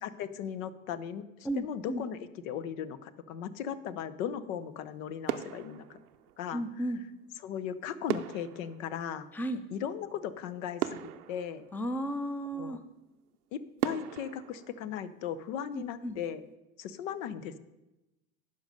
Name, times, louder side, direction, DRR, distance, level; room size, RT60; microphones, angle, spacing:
voice 1, 0.0-6.0 6.4-6.6 7.4-9.3 9.7-11.6 12.5-12.8 13.5-16.4 16.8-17.6, left 8 dB, 65° left, 15 dB, 0.8 m, -37 dB
voice 2, 1.4-2.0 6.5-7.0 9.3-9.6 11.7-12.8 15.7-16.2, right 1 dB, 5° left, 11 dB, 0.5 m, -34 dB
sound 1, 4.6-5.0 5.2-6.7 8.1-10.0 10.4-10.5 10.8-12.4 12.9-13.0 13.8-15.7 16.0-16.3, right 11 dB, 85° right, 0.6 m, -38 dB
10.5 x 5.4 x 6.5 m, 0.98 s
hypercardioid pair, 90°, 44 cm